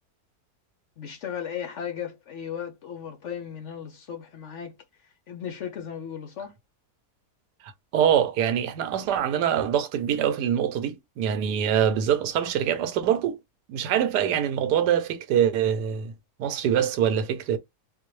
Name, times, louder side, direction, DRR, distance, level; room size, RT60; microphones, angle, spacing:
voice 1, 1.0-6.6, left 8 dB, 60° left, 0.8 m, -36 dB
voice 2, 7.9-13.4 13.7-16.1 16.4-17.6, right 9 dB, 90° right, 1.3 m, -24 dB
3.9 x 2.6 x 3.0 m
omnidirectional pair, 1.7 m